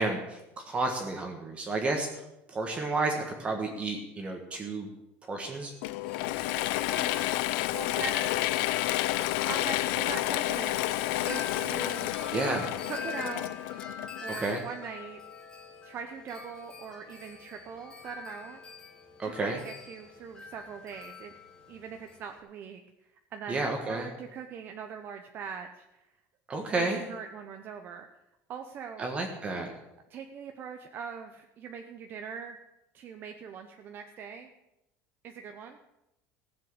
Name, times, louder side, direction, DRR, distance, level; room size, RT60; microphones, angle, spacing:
voice 1, 0.0-2.2 2.5-4.9 5.3-5.7 12.3-12.7 14.3-14.6 19.2-19.6 23.5-24.1 26.5-27.1 29.0-29.7, right 3 dB, 20° right, 3 dB, 1.5 m, -31 dB
Wind chime, 5.5-22.4, left 4 dB, 15° left, 1.7 m, -45 dB
Mechanisms / Drill, 5.8-14.4, left 16 dB, 85° left, 0.6 m, -30 dB
voice 2, 6.9-7.2 7.7-8.3 9.4-10.8 11.3-12.1 12.9-13.6 14.2-15.2 15.8-18.6 19.2-21.3 21.7-22.8 23.3-26.0 26.7-28.1 28.5-29.0 30.1-32.6 32.9-34.5 35.2-35.8, right 6 dB, 40° right, 5 dB, 0.8 m, -41 dB
15.5 x 7.5 x 8.0 m, 0.90 s
cardioid pair, 160°, 6 cm